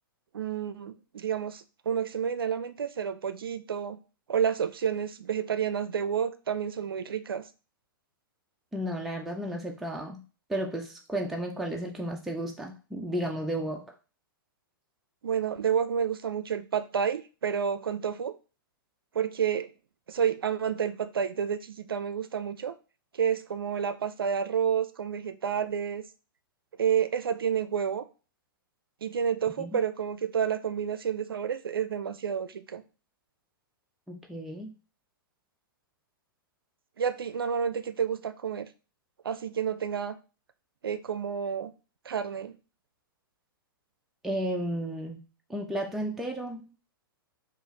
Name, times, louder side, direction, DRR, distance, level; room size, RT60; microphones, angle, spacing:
voice 1, 0.3-4.0 4.3-7.4 15.2-18.3 19.1-19.7 20.1-22.7 23.1-26.0 26.8-28.1 29.0-32.8 37.0-38.7 39.2-40.2 40.8-41.7 42.1-42.5, right 7 dB, 90° right, 0.4 m, -30 dB
voice 2, 8.7-10.2 10.5-13.9 29.6-29.7 34.1-34.7 44.2-45.2 45.5-46.6, right 1 dB, ahead, 0.4 m, -33 dB
4.5 x 2.4 x 3.1 m
hypercardioid pair, 125°, 12 cm